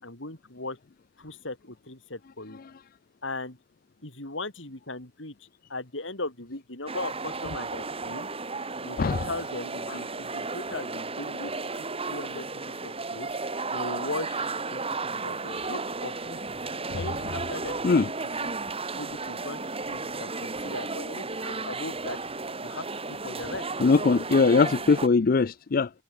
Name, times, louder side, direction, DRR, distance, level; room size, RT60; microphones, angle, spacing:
voice 1, 0.0-0.8 1.2-2.6 3.2-3.6 4.0-5.3 5.7-8.3 8.8-12.5 12.8-13.3 13.7-16.4 17.0-18.1 18.4-18.5 18.9-19.6 19.9-22.2 22.6-23.6, left 2 dB, 80° left, 5.6 m, -38 dB
sound 1, 6.9-25.1, right 3 dB, 30° right, 4.3 m, -34 dB
voice 2, 9.0-9.3 9.9-10.0 16.9-17.0 17.8-18.1 23.8-25.9, left 4 dB, 50° left, 0.5 m, -21 dB
head